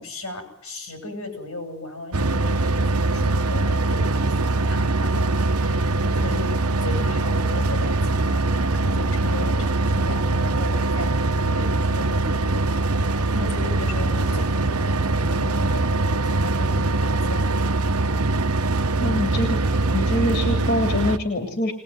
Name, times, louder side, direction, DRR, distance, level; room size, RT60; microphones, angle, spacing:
voice 1, 0.0-6.5 6.8-17.5, left 2 dB, 80° left, 5 dB, 7.4 m, -36 dB
sound 1, 2.1-21.2, right 2 dB, 90° right, 1.1 m, -22 dB
voice 2, 19.0-21.7, left 1 dB, 50° left, 4 dB, 2.9 m, -25 dB
22.0 x 20.5 x 9.4 m, 0.77 s
head